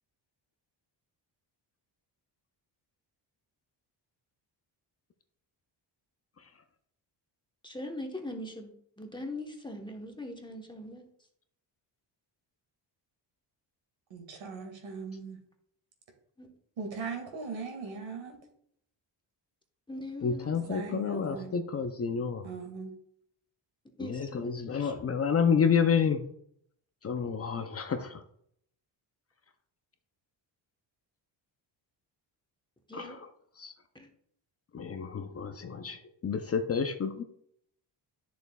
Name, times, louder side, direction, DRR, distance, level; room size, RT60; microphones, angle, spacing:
voice 1, 7.6-8.7 9.0-11.1 16.4-16.5 19.9-20.5 24.0-24.5 24.8-24.9 32.9-33.2, left 1 dB, 10° left, 2 dB, 1.0 m, -40 dB
voice 2, 14.1-15.4 16.8-18.3 20.7-21.6 22.4-22.9, right 4 dB, 80° right, 3 dB, 2.0 m, -39 dB
voice 3, 20.2-22.4 24.0-26.2 27.0-28.2 32.9-33.3 33.6-33.7 34.7-37.2, left 6 dB, 35° left, 8 dB, 0.5 m, -29 dB
10.5 x 6.9 x 2.3 m, 0.68 s
cardioid pair, 120°, 45 cm